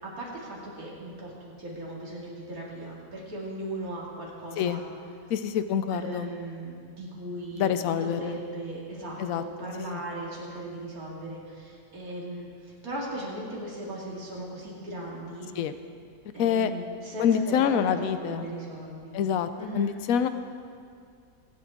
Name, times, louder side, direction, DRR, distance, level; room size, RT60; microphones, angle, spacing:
voice 1, 0.0-4.8 5.9-15.5 16.3-19.2 19.6-19.9, right 1 dB, 75° right, -5 dB, 3.0 m, -38 dB
voice 2, 5.3-6.3 7.6-8.4 9.2-9.4 9.8-10.0 15.6-15.7 16.4-16.7 17.2-18.5 19.1-19.5 19.7-20.3, left 8 dB, 75° left, 11 dB, 1.1 m, -26 dB
24.0 x 8.7 x 3.7 m, 2.3 s
omnidirectional pair, 1.5 m